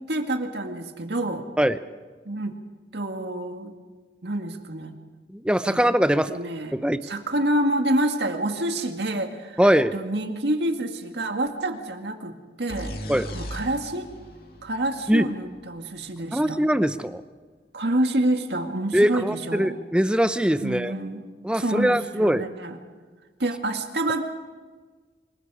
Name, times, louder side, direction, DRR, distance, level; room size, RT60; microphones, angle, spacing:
voice 1, 0.0-1.5 2.3-2.6 2.9-3.7 4.2-5.0 5.7-5.8 6.3-6.8 7.0-9.6 9.9-12.3 12.6-13.0 13.3-14.1 14.6-16.6 17.7-19.8 20.6-21.2 21.5-22.8 23.4-24.2, right 1 dB, 70° right, 5 dB, 2.0 m, -27 dB
voice 2, 5.3-6.3 6.7-7.0 9.6-10.0 13.1-13.3 15.1-15.3 16.3-17.2 18.9-20.9 21.4-22.4, equal, 5° right, 12 dB, 0.6 m, -22 dB
sound 1, 12.7-16.4, equal, 55° left, 2.3 m, -38 dB
26.5 x 21.5 x 4.9 m, 1.4 s
head